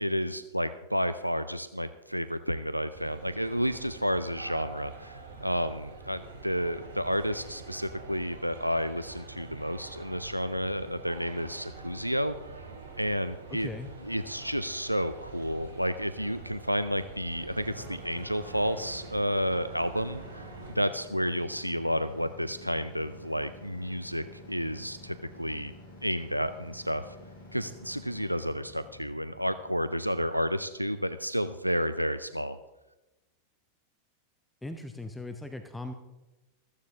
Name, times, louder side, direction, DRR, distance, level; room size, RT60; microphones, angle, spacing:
voice 1, 0.0-12.4 13.0-13.7 14.0-20.5 20.7-25.7 26.0-27.2 27.5-32.6, equal, 90° right, 12 dB, 0.4 m, -31 dB
sound 1, 2.9-20.7, right 3 dB, 60° right, 3.0 m, -46 dB
voice 2, 13.5-13.9 34.6-35.9, left 2 dB, 5° left, 6 dB, 0.9 m, -39 dB
sound 2, 17.4-31.3, left 1 dB, 75° left, 5.7 m, -50 dB
14.5 x 14.5 x 3.6 m, 1.0 s
figure-of-eight pair, 90°, 0 cm